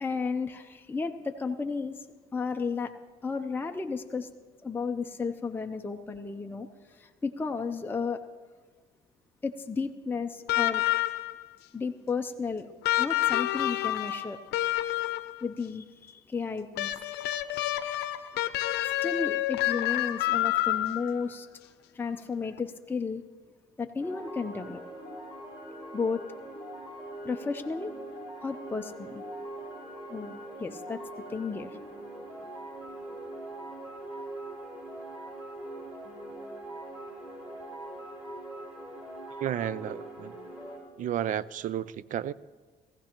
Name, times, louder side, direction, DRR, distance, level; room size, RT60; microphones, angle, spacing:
voice 1, 0.0-2.0 2.3-2.9 3.2-4.3 4.6-8.2 9.4-10.8 11.7-12.7 13.0-14.4 15.4-17.0 18.8-21.5 21.9-23.2 23.8-24.8 25.9-26.2 27.2-27.9 28.4-29.2 30.1-31.0 31.3-31.8, left 5 dB, 10° left, 0.5 m, -33 dB
sound 1, 10.5-11.4 12.8-15.4 16.8-21.2 22.6-22.7, left 16 dB, 80° left, 0.7 m, -28 dB
sound 2, 24.0-40.8, right 1 dB, 10° right, 4.9 m, -42 dB
voice 2, 39.4-40.3 41.0-42.3, right 10 dB, 50° right, 0.4 m, -32 dB
19.0 x 15.0 x 2.9 m
cardioid pair, 110°, 17 cm